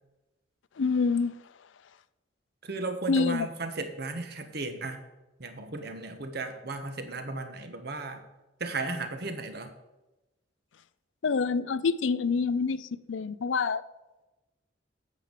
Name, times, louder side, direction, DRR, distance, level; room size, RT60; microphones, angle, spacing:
voice 1, 0.8-1.3 3.1-3.5 11.2-13.8, left 4 dB, 80° left, 16 dB, 0.5 m, -27 dB
voice 2, 2.6-5.0 5.4-8.2 8.6-9.7, right 3 dB, 55° right, 7 dB, 1.3 m, -35 dB
9.0 x 7.2 x 6.6 m, 1.0 s
head